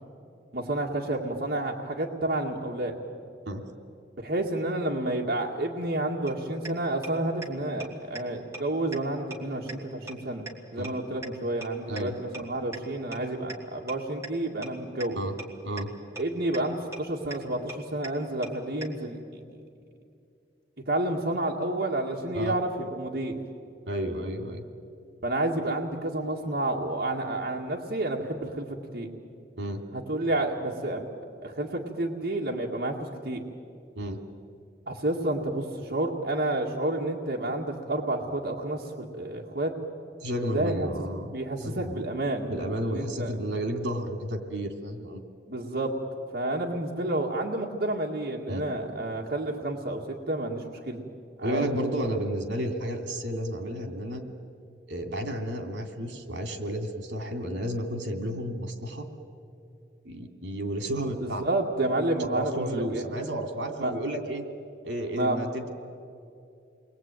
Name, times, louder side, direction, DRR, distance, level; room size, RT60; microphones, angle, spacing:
voice 1, 0.5-3.0 4.2-10.4 10.7-15.2 16.1-19.2 20.9-23.4 25.2-28.7 28.9-29.1 29.9-31.1 31.4-33.4 34.9-39.7 40.5-43.3 45.5-45.9 46.3-51.0 51.4-51.7 61.2-63.1 63.8-63.9 65.1-65.4, right 1 dB, 60° right, -2 dB, 2.1 m, -30 dB
sound 1, 6.3-6.4 6.7-6.8 7.0-7.1 7.4-7.5 7.8-7.9 8.2-8.3 8.5-8.6 8.9-9.0 9.3-9.4 9.7-9.8 10.1-10.2 10.5-10.6 10.8-10.9 11.2-11.3 11.6-11.7 12.0-12.1 12.3-12.4 12.7-12.8 13.1-13.2 13.5-13.6 13.9-14.0 14.2-14.3 14.6-14.7 15.0-15.1 15.4-15.5 15.8-15.9 16.2-16.3 16.5-16.6 16.9-17.0 17.3-17.4 17.7-17.8 18.0-18.1 18.4-18.5 18.8-18.9, right 3 dB, 15° right, 2.7 m, -37 dB
voice 2, 23.9-24.6 29.6-29.8 33.9-34.2 40.2-42.1 42.5-45.2 48.5-48.6 51.4-54.3 54.9-59.1 60.0-61.4 62.3-64.4 64.8-65.7, equal, 80° right, 5 dB, 2.9 m, -32 dB
29.5 x 22.0 x 9.2 m, 2.5 s
head